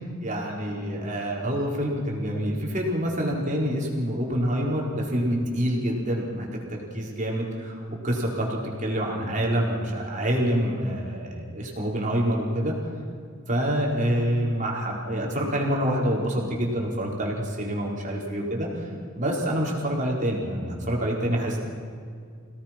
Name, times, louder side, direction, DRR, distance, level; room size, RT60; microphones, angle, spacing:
voice 1, 0.2-7.8 8.0-12.7 13.5-18.9 19.2-21.6, equal, 40° right, -2 dB, 4.4 m, -27 dB
27.5 x 18.0 x 6.0 m, 2.2 s
head